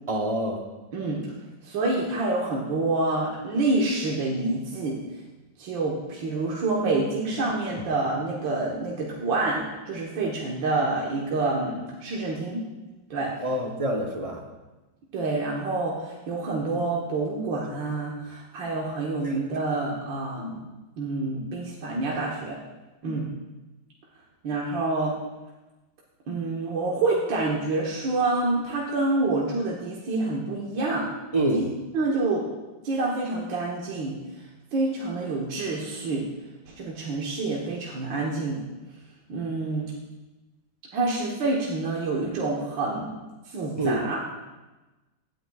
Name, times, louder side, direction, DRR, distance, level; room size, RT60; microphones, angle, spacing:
voice 1, 0.1-0.6 13.4-14.4 19.2-19.4 31.3-31.7 43.8-44.0, right 1 dB, 30° right, 2 dB, 0.6 m, -26 dB
voice 2, 1.6-5.0 5.6-12.6 13.1-13.5 15.1-20.7 21.0-22.6 23.0-23.3 24.4-25.1 26.3-31.1 31.5-31.6 31.9-32.5 32.8-34.4 34.7-36.3 36.8-38.6 39.3-39.9 40.9-43.1 43.5-44.2, right 2 dB, 80° right, -4 dB, 2.0 m, -27 dB
16.0 x 10.0 x 2.3 m, 1.1 s
omnidirectional pair, 2.0 m